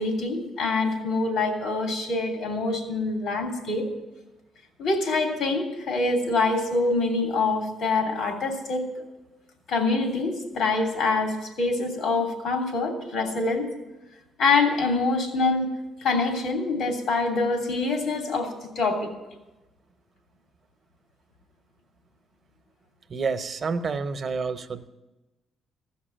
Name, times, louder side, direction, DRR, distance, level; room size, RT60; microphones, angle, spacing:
voice 1, 0.0-3.9 4.8-8.8 9.7-13.7 14.4-15.7 16.0-19.1, left 3 dB, 80° left, 3 dB, 2.9 m, -25 dB
voice 2, 23.1-24.9, right 4 dB, 45° right, 10 dB, 0.8 m, -29 dB
15.0 x 6.0 x 8.9 m, 1.1 s
cardioid pair, 90°, 0 cm